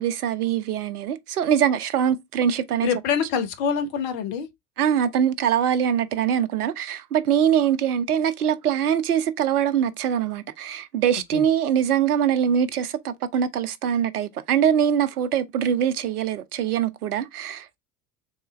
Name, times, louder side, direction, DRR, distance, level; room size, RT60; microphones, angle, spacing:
voice 1, 0.0-2.9 4.8-17.8, right 9 dB, 75° right, 0.6 m, -23 dB
voice 2, 2.8-4.5 11.3-11.4, left 7 dB, 50° left, 1.0 m, -25 dB
3.7 x 3.3 x 3.0 m
figure-of-eight pair, 70°, 45 cm